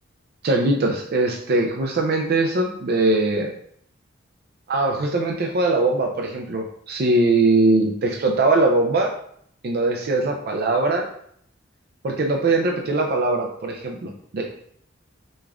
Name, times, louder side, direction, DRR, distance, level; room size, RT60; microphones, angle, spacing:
voice 1, 0.4-3.5 4.7-9.1 9.6-11.0 12.0-14.4, right 2 dB, 50° right, 1 dB, 0.4 m, -21 dB
5.1 x 2.4 x 3.5 m, 0.66 s
head